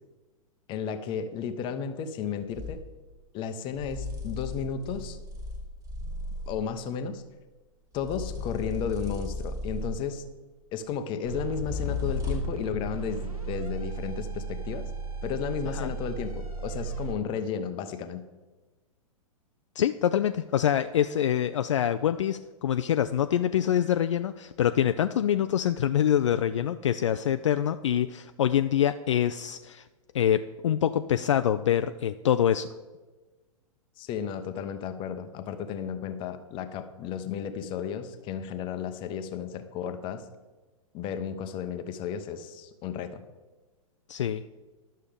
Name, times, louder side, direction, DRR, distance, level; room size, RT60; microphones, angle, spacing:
voice 1, 0.7-2.8 3.3-5.2 6.5-7.2 7.9-10.2 10.7-14.9 15.2-18.2 34.0-40.2 40.9-43.2, left 7 dB, 25° left, 9 dB, 0.8 m, -33 dB
sound 1, 2.5-2.9 3.8-6.7 8.0-10.2 11.6-12.7, left 3 dB, 15° right, 1.8 m, -35 dB
sound 2, 11.2-17.1, right 3 dB, 80° right, 1.3 m, -35 dB
voice 2, 19.8-29.9 30.1-32.7 44.1-44.4, left 10 dB, 55° left, 10 dB, 0.4 m, -25 dB
11.5 x 6.6 x 5.1 m, 1.2 s
figure-of-eight pair, 105°, 18 cm